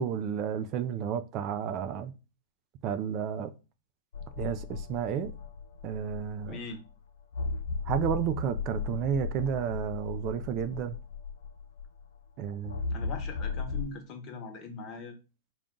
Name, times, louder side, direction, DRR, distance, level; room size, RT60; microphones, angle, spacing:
voice 1, 0.0-2.1 2.8-3.5 4.4-5.3 5.8-6.6 7.9-11.0 12.4-12.8, right 8 dB, 40° right, 0.4 m, -31 dB
sound 1, 4.1-6.7 7.3-12.0 12.7-13.9, left 5 dB, 75° left, 0.4 m, -36 dB
voice 2, 6.5-6.8 12.9-15.1, left 3 dB, 40° left, 1.0 m, -41 dB
3.8 x 2.3 x 3.6 m
hypercardioid pair, 120°, 0 cm